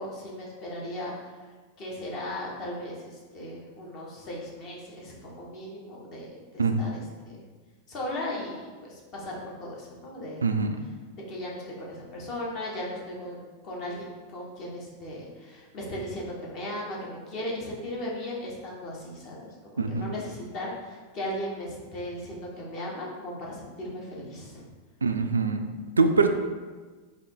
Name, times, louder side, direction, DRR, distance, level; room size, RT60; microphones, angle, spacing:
voice 1, 0.0-1.3 1.8-7.0 7.2-7.4 7.9-10.4 11.1-19.5 19.9-24.6, left 1 dB, 40° left, -4 dB, 1.3 m, -37 dB
voice 2, 6.6-6.9 10.4-10.8 19.8-20.1 25.0-25.7 26.0-26.3, right 4 dB, 75° right, 6 dB, 0.3 m, -24 dB
3.9 x 2.8 x 4.6 m, 1.4 s
figure-of-eight pair, 90°, 0 cm